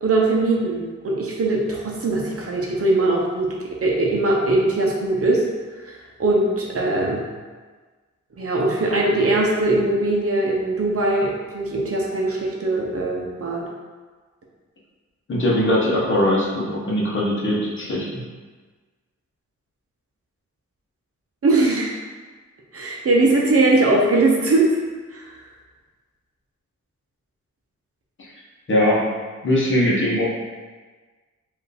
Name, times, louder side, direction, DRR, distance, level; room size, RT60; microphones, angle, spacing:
voice 1, 0.0-3.5 3.8-5.4 5.8-5.9 6.2-7.2 8.4-13.6 21.4-22.0 22.7-24.7 25.1-25.4, right 2 dB, 50° right, -2 dB, 0.7 m, -20 dB
voice 2, 15.3-18.2 28.7-29.0 29.4-30.3, left 1 dB, 40° left, -5 dB, 0.9 m, -20 dB
4.5 x 2.6 x 3.4 m, 1.4 s
wide cardioid pair, 165°, 29 cm